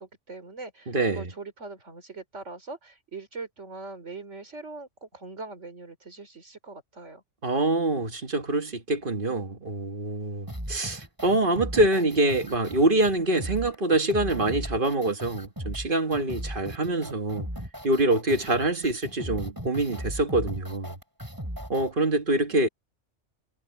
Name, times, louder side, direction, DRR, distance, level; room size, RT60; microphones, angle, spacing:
voice 1, 0.0-7.2 22.5-22.7, right 3 dB, 75° right, 4.1 m, -41 dB
voice 2, 0.9-1.3 7.4-17.5 17.8-20.9 21.7-22.7, right 2 dB, 45° right, 1.7 m, -25 dB
sound 1, 10.5-21.9, equal, 15° right, 6.4 m, -37 dB
omnidirectional pair, 1.2 m